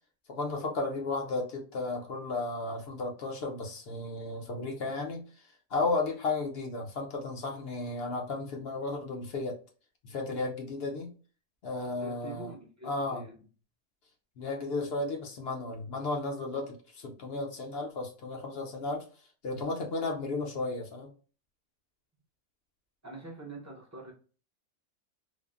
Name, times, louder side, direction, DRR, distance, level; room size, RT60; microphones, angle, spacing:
voice 1, 0.3-5.2 5.7-9.6 10.0-11.1 11.6-12.5 12.8-13.2 14.4-19.0 19.4-21.1, left 3 dB, 60° left, 0.8 m, -34 dB
voice 2, 12.0-13.4 23.0-24.1, right 2 dB, 20° right, 0.5 m, -45 dB
3.3 x 2.0 x 2.3 m
omnidirectional pair, 1.3 m